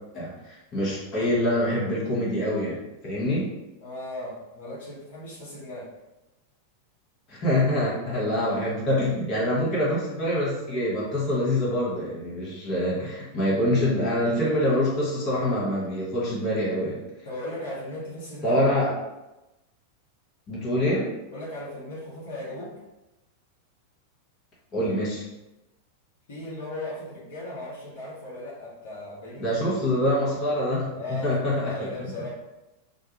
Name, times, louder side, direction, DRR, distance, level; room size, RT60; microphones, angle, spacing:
voice 1, 0.7-3.5 7.3-17.0 18.4-18.9 20.5-21.1 24.7-25.3 29.4-31.7 32.0-32.1, left 1 dB, 30° left, -6 dB, 1.0 m, -25 dB
voice 2, 3.8-5.9 8.0-8.3 17.2-18.6 21.3-22.7 26.3-29.5 31.0-32.3, left 1 dB, 60° left, -7 dB, 0.8 m, -37 dB
2.4 x 2.2 x 2.9 m, 0.99 s
figure-of-eight pair, 90°, 0 cm